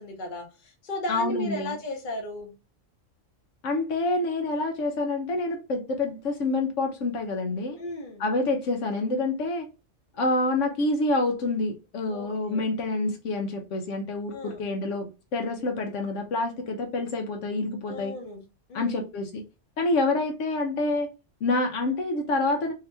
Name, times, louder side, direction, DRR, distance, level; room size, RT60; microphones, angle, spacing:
voice 1, 0.0-2.5 7.8-8.2 12.1-12.6 14.3-14.6 17.9-18.4 18.7-19.0, left 1 dB, 45° left, 0.9 m, -35 dB
voice 2, 1.1-1.7 3.6-7.8 8.2-9.7 10.2-18.1 18.7-19.4 19.8-21.1 21.4-22.7, left 2 dB, 75° left, 1.0 m, -27 dB
2.8 x 2.8 x 3.2 m
omnidirectional pair, 1.3 m